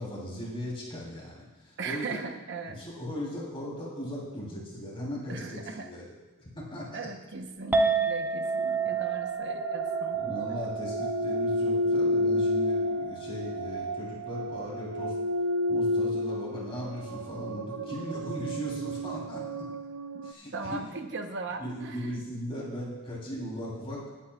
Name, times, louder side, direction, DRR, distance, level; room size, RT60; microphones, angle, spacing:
voice 1, 0.0-2.2 2.8-6.1 6.5-7.0 10.1-15.1 15.7-19.4 20.2-20.8 21.6-24.0, equal, 25° left, -5 dB, 3.3 m, -38 dB
voice 2, 1.8-2.8 5.3-5.9 6.9-10.2 20.1-20.3 20.5-22.2, right 4 dB, 55° right, 5 dB, 0.9 m, -38 dB
Chink clink, 7.7-14.0, right 4 dB, 10° right, 0.8 m, -31 dB
sound 1, 8.5-20.3, left 1 dB, 85° right, 0.5 m, -31 dB
21.0 x 8.6 x 2.4 m, 1.2 s
head